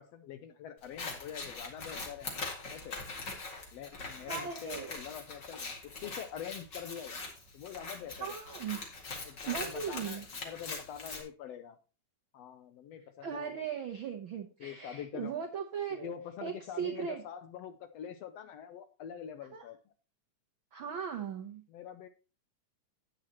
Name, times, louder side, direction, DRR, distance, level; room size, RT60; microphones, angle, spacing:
voice 1, 0.0-2.3 2.7-3.0 3.7-7.2 7.5-8.4 9.2-11.8 12.3-13.6 14.6-15.5 15.9-19.9 21.7-22.1, left 9 dB, 75° left, 9 dB, 1.6 m, -45 dB
Scissors, 0.8-11.2, left 3 dB, 40° left, 2.6 m, -42 dB
voice 2, 4.3-4.9 8.1-8.8 9.1-10.3 13.2-16.1 16.4-17.2 19.5-19.7 20.7-21.6, right 7 dB, 75° right, 4 dB, 1.1 m, -38 dB
11.0 x 9.2 x 2.9 m, 0.33 s
omnidirectional pair, 3.5 m